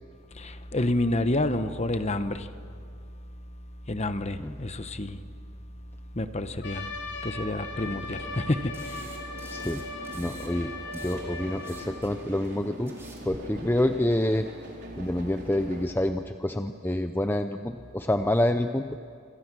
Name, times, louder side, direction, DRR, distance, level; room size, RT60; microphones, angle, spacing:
voice 1, 0.4-2.5 3.9-5.2 6.1-6.9 7.2-9.0, left 1 dB, 30° left, 10 dB, 1.0 m, -29 dB
Trumpet, 6.6-11.9, left 2 dB, 55° left, 3.5 m, -39 dB
sound 1, 7.7-15.9, right 1 dB, 50° right, 4.1 m, -44 dB
sound 2, 8.7-10.5 10.7-13.4, right 2 dB, 10° right, 3.9 m, -50 dB
voice 2, 9.4-9.8 10.1-12.9 13.2-14.5 15.0-18.9, left 1 dB, 10° left, 7 dB, 0.5 m, -27 dB
27.5 x 26.5 x 6.2 m, 2.4 s
head